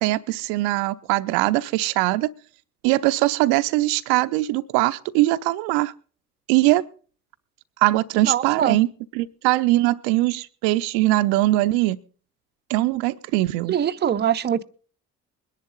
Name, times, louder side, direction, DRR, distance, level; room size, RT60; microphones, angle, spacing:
voice 1, 0.0-2.3 2.8-5.9 6.5-6.8 7.8-8.9 9.1-12.0 12.7-13.8, right 18 dB, 60° right, 0.6 m, -21 dB
voice 2, 8.2-8.8 13.7-14.6, right 9 dB, 25° right, 0.6 m, -22 dB
21.0 x 10.5 x 3.9 m
figure-of-eight pair, 45°, 44 cm